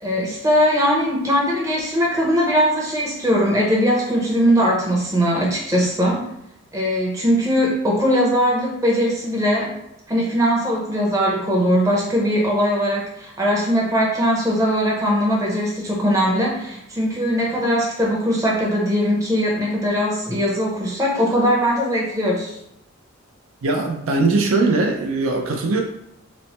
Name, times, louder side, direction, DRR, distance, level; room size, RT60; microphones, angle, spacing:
voice 1, 0.0-6.2 6.7-9.7 10.1-22.6, equal, 15° right, -3 dB, 0.7 m, -20 dB
voice 2, 23.6-25.8, right 3 dB, 70° right, 2 dB, 0.5 m, -20 dB
3.1 x 2.1 x 4.1 m, 0.82 s
head